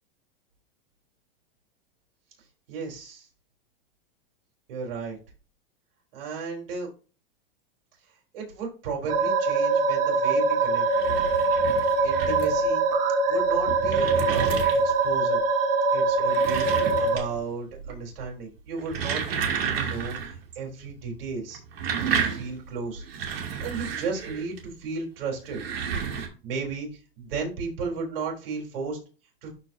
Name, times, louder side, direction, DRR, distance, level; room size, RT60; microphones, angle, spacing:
voice 1, 2.7-3.3 4.7-5.2 6.1-6.9 8.3-10.8 12.0-12.8 13.3-15.4 15.9-16.7 17.0-21.6 22.1-23.0 23.6-25.6 26.4-26.9 27.2-29.0 29.4-29.5, right 4 dB, 70° right, 0 dB, 3.8 m, -34 dB
sound 1, 9.1-17.2, right 3 dB, 30° right, 1.7 m, -23 dB
sound 2, 10.7-12.7 13.4-15.1 16.1-17.5 17.8-18.2 18.7-20.4 20.6-20.7 21.5-24.6 25.4-26.3, right 7 dB, 85° right, 2.7 m, -31 dB
12.5 x 4.6 x 2.7 m, 0.36 s
supercardioid pair, 150°, 29 cm